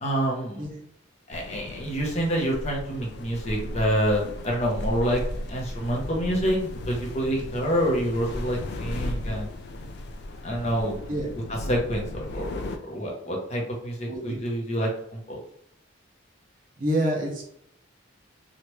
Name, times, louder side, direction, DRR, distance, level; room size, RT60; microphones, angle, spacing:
voice 1, 0.0-0.7 1.3-5.2 5.5-9.5 10.4-11.0 11.7-15.4, equal, 35° left, -1 dB, 0.8 m, -27 dB
sound 1, 1.3-12.8, left 1 dB, 60° left, 0.3 m, -35 dB
voice 2, 14.1-14.4 16.8-17.4, right 1 dB, 45° right, -1 dB, 0.8 m, -27 dB
3.1 x 2.4 x 3.0 m, 0.69 s
head